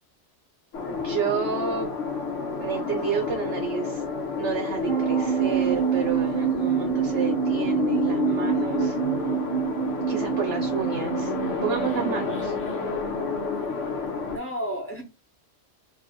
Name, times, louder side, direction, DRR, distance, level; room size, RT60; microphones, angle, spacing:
sound 1, 0.7-14.4, left 4 dB, 80° left, 1.0 m, -30 dB
voice 1, 0.9-1.9 2.6-4.0 4.4-9.0 10.1-11.3 11.6-12.5, right 7 dB, 60° right, 0.9 m, -30 dB
sound 2, 4.9-12.3, right 10 dB, 35° right, 0.7 m, -27 dB
voice 2, 13.5-13.8 14.3-15.0, equal, 15° left, 0.6 m, -34 dB
2.7 x 2.5 x 3.6 m
omnidirectional pair, 1.2 m